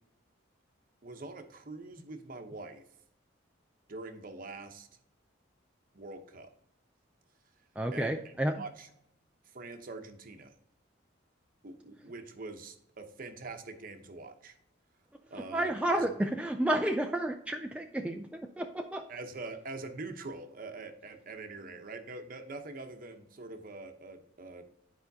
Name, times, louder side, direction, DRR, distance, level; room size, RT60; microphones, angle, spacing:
voice 1, 1.0-2.8 3.9-4.9 5.9-6.5 7.9-8.9 9.5-10.5 11.6-14.6 15.3-16.3 19.1-24.7, right 3 dB, 45° right, 6 dB, 0.8 m, -44 dB
voice 2, 7.8-8.6 15.5-19.0, right 1 dB, 5° right, 4 dB, 0.3 m, -31 dB
10.5 x 5.0 x 2.7 m, 0.75 s
head